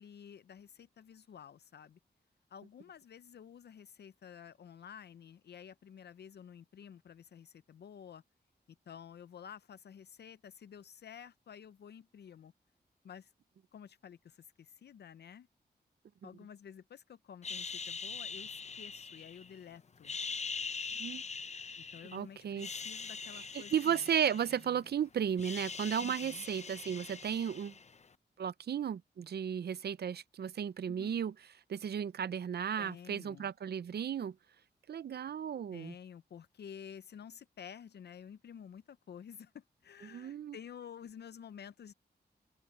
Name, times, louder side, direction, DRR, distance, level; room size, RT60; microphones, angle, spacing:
voice 1, 0.0-2.0 2.5-8.2 8.9-12.5 13.0-13.3 13.7-15.5 16.2-20.2 21.9-24.1 26.0-26.4 30.9-31.1 32.8-33.5 35.7-41.9, left 8 dB, 70° left, 0.5 m, -51 dB
sound 1, 17.4-19.6 20.0-22.2 22.5-24.9 25.2-28.0, left 5 dB, 40° left, 0.8 m, -43 dB
voice 2, 22.1-22.7 23.3-27.7 28.4-31.3 31.7-34.3 34.9-35.9 40.0-40.6, right 8 dB, 65° right, 0.6 m, -34 dB
open air
wide cardioid pair, 105°, 18 cm